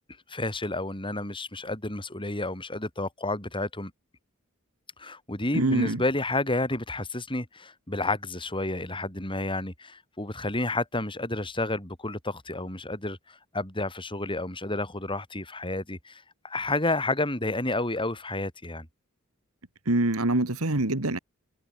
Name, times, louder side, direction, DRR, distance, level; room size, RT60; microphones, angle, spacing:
voice 1, 0.3-3.9 5.0-18.9, left 2 dB, 25° left, 6.3 m, -30 dB
voice 2, 5.5-6.0 19.9-21.2, right 2 dB, 80° right, 2.2 m, -25 dB
head